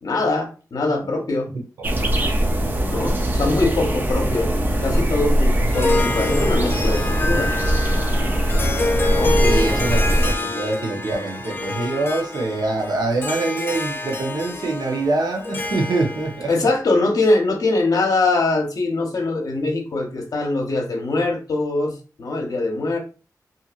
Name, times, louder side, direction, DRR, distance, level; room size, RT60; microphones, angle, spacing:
voice 1, 0.0-1.5 2.9-4.5 4.8-7.5 9.1-9.3 16.5-23.0, left 2 dB, 65° left, 0.8 m, -22 dB
sound 1, 1.8-10.3, right 1 dB, 30° right, 0.5 m, -21 dB
Harp, 5.6-16.5, left 2 dB, 35° left, 0.4 m, -27 dB
voice 2, 9.4-16.5, right 2 dB, 75° right, 0.8 m, -24 dB
2.7 x 2.6 x 2.4 m
wide cardioid pair, 90°, 7 cm